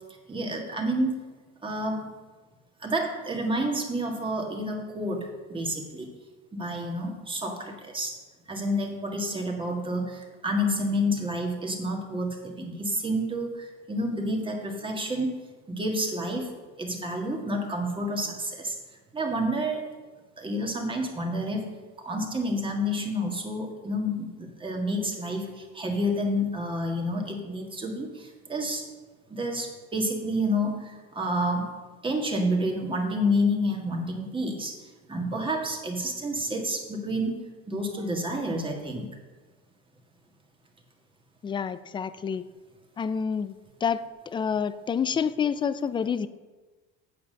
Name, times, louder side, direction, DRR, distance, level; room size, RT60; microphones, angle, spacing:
voice 1, 0.3-1.3 1.6-2.1 2.8-6.1 6.5-8.2 8.5-15.4 15.7-16.5 16.8-18.8 19.1-19.8 20.4-21.7 22.0-28.9 29.3-31.7 32.0-34.8 35.1-39.1, equal, 15° right, 1 dB, 1.8 m, -29 dB
voice 2, 41.4-42.5 43.0-43.5 43.8-46.3, left 7 dB, 15° left, 15 dB, 0.3 m, -28 dB
8.5 x 7.2 x 6.6 m, 1.3 s
cardioid pair, 125°, 30 cm